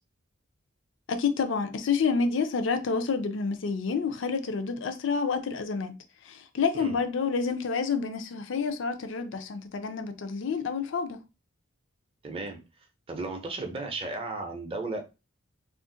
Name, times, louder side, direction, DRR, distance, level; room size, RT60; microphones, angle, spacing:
voice 1, 1.1-6.0 6.2-11.2, left 5 dB, 65° left, 0.4 m, -29 dB
voice 2, 12.2-12.6 13.1-15.0, right 3 dB, 30° right, 0.6 m, -34 dB
2.5 x 2.1 x 3.8 m
head